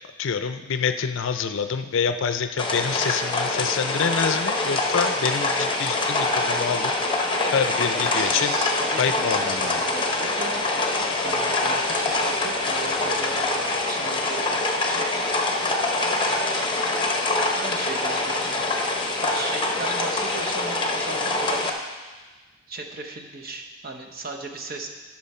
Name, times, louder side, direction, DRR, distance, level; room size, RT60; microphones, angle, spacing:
voice 1, 0.2-6.9 7.5-8.6 9.0-9.8, left 6 dB, 60° left, 9 dB, 0.5 m, -26 dB
sound 1, 2.6-21.7, left 2 dB, 25° left, 0.8 m, -25 dB
voice 2, 7.9-10.6 11.2-15.0 17.5-18.7 19.2-21.7 22.7-24.9, right 3 dB, 45° right, 3 dB, 1.0 m, -36 dB
12.5 x 6.1 x 4.3 m, 1.3 s
head